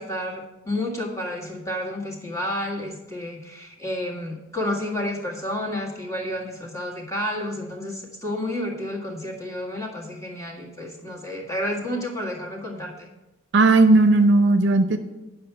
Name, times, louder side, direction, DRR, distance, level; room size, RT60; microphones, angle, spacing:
voice 1, 0.0-13.1, left 1 dB, 15° left, -2 dB, 1.8 m, -30 dB
voice 2, 13.5-15.0, right 2 dB, 65° right, 8 dB, 0.6 m, -16 dB
10.0 x 5.8 x 5.9 m, 1.0 s
head